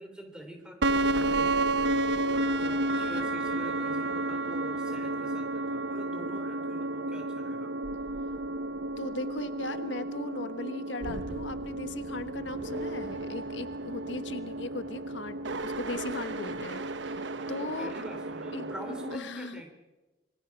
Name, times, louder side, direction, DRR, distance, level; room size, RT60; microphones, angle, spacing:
voice 1, 0.0-7.7 17.4-19.7, equal, 5° right, 4 dB, 3.2 m, -45 dB
sound 1, 0.8-19.2, right 2 dB, 75° right, 0.9 m, -32 dB
voice 2, 9.0-17.9 18.5-18.7 19.1-19.6, left 2 dB, 75° left, 10 dB, 1.3 m, -38 dB
27.0 x 21.5 x 6.0 m, 1.2 s
head